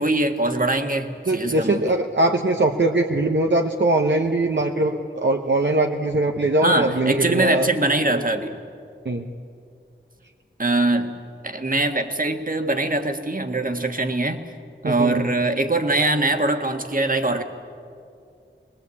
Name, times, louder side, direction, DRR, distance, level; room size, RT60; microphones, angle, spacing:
voice 1, 0.0-1.9 6.6-8.6 10.6-14.4 14.8-17.4, right 2 dB, 45° right, 5 dB, 1.8 m, -22 dB
voice 2, 1.3-7.7 8.1-8.2 9.0-9.3 14.8-15.2, right 2 dB, 65° right, 2 dB, 1.2 m, -21 dB
23.0 x 20.5 x 8.5 m, 2.4 s
wide cardioid pair, 45°, 20 cm